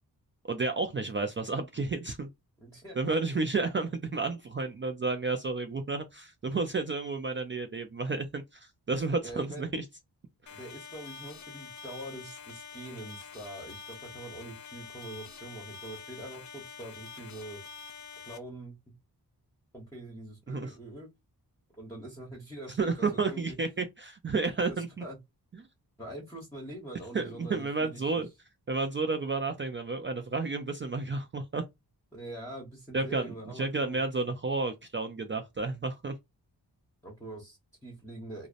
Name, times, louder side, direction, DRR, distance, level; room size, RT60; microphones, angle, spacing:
voice 1, 0.4-2.3 3.0-9.8 10.5-10.6 20.5-20.8 22.8-25.0 27.1-28.3 28.7-31.6 32.9-36.1, right 3 dB, 30° right, 0.4 m, -31 dB
voice 2, 2.6-3.2 9.2-9.7 10.5-17.6 18.3-18.7 19.7-21.1 21.8-23.6 24.7-25.2 26.0-28.2 32.1-34.0 37.0-38.5, right 1 dB, 5° left, 1.0 m, -44 dB
sound 1, 10.5-18.4, left 6 dB, 50° left, 0.5 m, -46 dB
2.6 x 2.0 x 2.4 m
wide cardioid pair, 95°, 39 cm